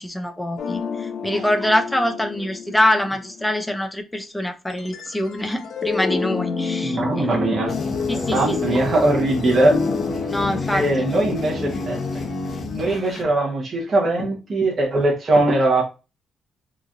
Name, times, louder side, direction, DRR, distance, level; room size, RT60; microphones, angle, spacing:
voice 1, 0.0-7.3 8.1-8.6 10.3-11.1, left 1 dB, 5° left, 0.5 m, -24 dB
sound 1, 0.6-3.7 4.7-9.0 9.3-13.5, left 5 dB, 80° left, 0.7 m, -31 dB
voice 2, 6.8-7.7 8.3-9.7 10.7-11.9 12.7-15.8, right 2 dB, 35° right, 1.0 m, -20 dB
sound 2, 7.7-13.2, left 4 dB, 45° left, 0.8 m, -28 dB
3.8 x 3.0 x 2.5 m
cardioid pair, 135°, 0 cm